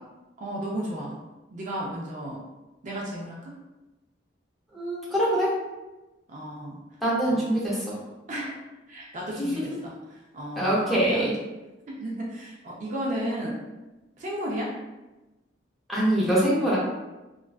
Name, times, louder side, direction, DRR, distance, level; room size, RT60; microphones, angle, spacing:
voice 1, 0.4-1.1 1.5-2.4 2.8-3.6 6.3-6.8 7.3-7.5 8.3-8.6 8.9-11.3 11.9-13.6 14.2-14.8, right 1 dB, 45° right, -3 dB, 0.4 m, -34 dB
voice 2, 4.7-5.6 7.0-8.0 9.4-9.5 10.6-11.3 15.9-16.8, right 1 dB, ahead, -8 dB, 0.6 m, -24 dB
2.4 x 2.2 x 2.3 m, 1.1 s
head